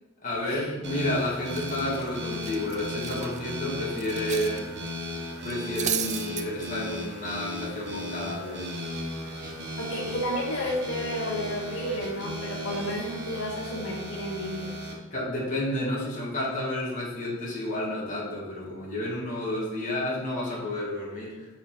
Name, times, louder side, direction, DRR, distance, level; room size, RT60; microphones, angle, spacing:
voice 1, 0.2-4.7 5.4-8.9 15.1-21.5, left 1 dB, 40° left, -6 dB, 2.2 m, -31 dB
sound 1, 0.8-14.9, equal, 60° right, 1.4 m, -36 dB
Cutlery silverware, 0.9-1.1 1.5-4.6 4.9-5.0 5.4-6.4, right 9 dB, 35° right, 0.4 m, -34 dB
voice 2, 9.8-14.7, left 1 dB, 90° left, -4 dB, 1.8 m, -32 dB
6.8 x 4.9 x 4.6 m, 1.2 s
head